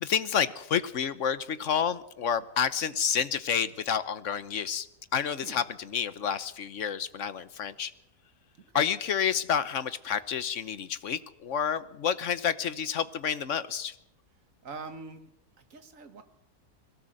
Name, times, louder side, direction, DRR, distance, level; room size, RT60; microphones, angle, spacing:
voice 1, 0.0-4.9 5.1-7.9 8.7-13.9, left 8 dB, 55° left, 14 dB, 1.2 m, -29 dB
voice 2, 14.6-15.3 15.6-16.2, right 4 dB, 55° right, 8 dB, 2.1 m, -44 dB
21.5 x 16.5 x 7.8 m, 0.81 s
omnidirectional pair, 1.6 m